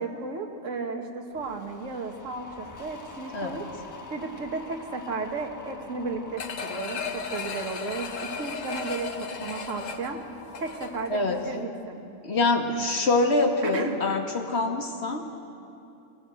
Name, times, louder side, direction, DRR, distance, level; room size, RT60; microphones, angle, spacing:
voice 1, 0.0-3.7 4.1-10.2 10.6-11.2 11.5-12.0 13.6-14.0, right 3 dB, 70° right, 2 dB, 1.9 m, -34 dB
sound 1, 1.3-11.6, left 3 dB, 15° left, 1.2 m, -45 dB
sound 2, 6.4-11.2 11.6-11.7, left 5 dB, 70° left, 1.5 m, -35 dB
voice 2, 12.2-15.3, left 2 dB, 55° left, 2 dB, 2.1 m, -25 dB
24.0 x 17.5 x 7.8 m, 2.6 s
omnidirectional pair, 1.4 m